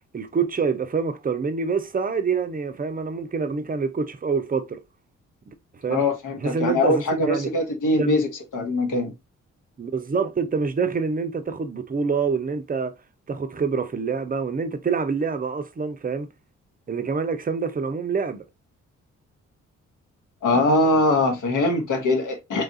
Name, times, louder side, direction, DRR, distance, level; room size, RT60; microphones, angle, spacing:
voice 1, 0.1-4.8 5.5-5.6 5.8-6.0 6.4-7.5 8.0-8.2 9.8-12.9 13.3-16.3 16.9-18.4, right 5 dB, 25° right, 0.5 m, -26 dB
voice 2, 5.9-9.1 20.4-22.6, left 2 dB, 65° left, 0.9 m, -22 dB
3.1 x 2.4 x 2.6 m
supercardioid pair, 45°, 34 cm